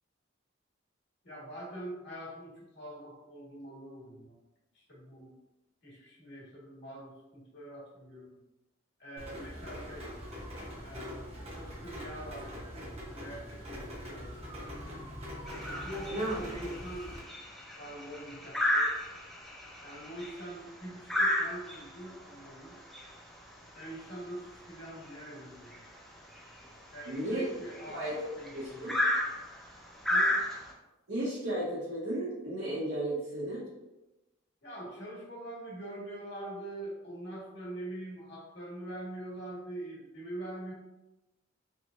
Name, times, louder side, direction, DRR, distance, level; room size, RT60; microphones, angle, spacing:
voice 1, 1.2-4.4 4.7-5.4 5.8-8.4 9.0-10.1 10.8-14.5 15.7-17.1 17.8-18.9 19.8-22.8 23.7-25.9 26.9-29.0 30.1-30.4 34.6-40.7, right 1 dB, 60° left, -5 dB, 1.4 m, -44 dB
Rain, 9.2-17.2, equal, 30° right, 0.9 m, -43 dB
sound 1, 15.5-30.7, left 1 dB, ahead, 0.6 m, -34 dB
voice 2, 27.0-27.5 27.9-28.2 28.5-28.9 31.1-33.6, right 1 dB, 90° right, -13 dB, 1.3 m, -34 dB
3.4 x 3.1 x 2.4 m, 1.0 s
head